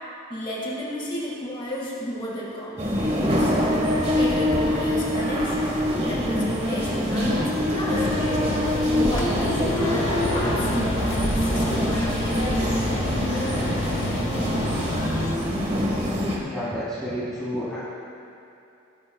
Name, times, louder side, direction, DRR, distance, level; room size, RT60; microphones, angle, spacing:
voice 1, 0.3-3.5 4.2-8.1 8.9-14.1, equal, 25° left, -5 dB, 1.8 m, -33 dB
sound 1, 2.8-16.4, equal, 30° right, 1.3 m, -24 dB
sound 2, 7.9-15.4, left 2 dB, 60° left, 0.8 m, -31 dB
voice 2, 16.4-17.8, equal, 5° left, -12 dB, 2.0 m, -30 dB
17.0 x 12.0 x 2.3 m, 2.8 s
head